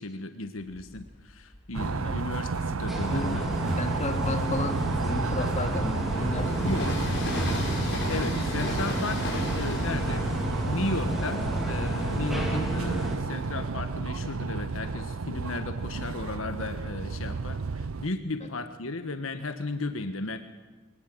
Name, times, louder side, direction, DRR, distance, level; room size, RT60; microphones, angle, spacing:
voice 1, 0.0-3.8 6.6-6.8 8.1-10.2 10.6-20.4, left 2 dB, 80° left, 8 dB, 1.4 m, -35 dB
Train, 0.6-2.3 2.9-13.5, left 2 dB, 60° left, 5.1 m, -39 dB
sound 1, 1.7-18.1, right 4 dB, 85° right, 0.6 m, -32 dB
sound 2, 2.9-13.2, equal, ahead, 4.0 m, -32 dB
voice 2, 3.1-6.8 7.3-7.6 18.4-18.5, left 1 dB, 35° left, 5 dB, 2.5 m, -33 dB
23.5 x 18.5 x 7.8 m, 1.2 s
head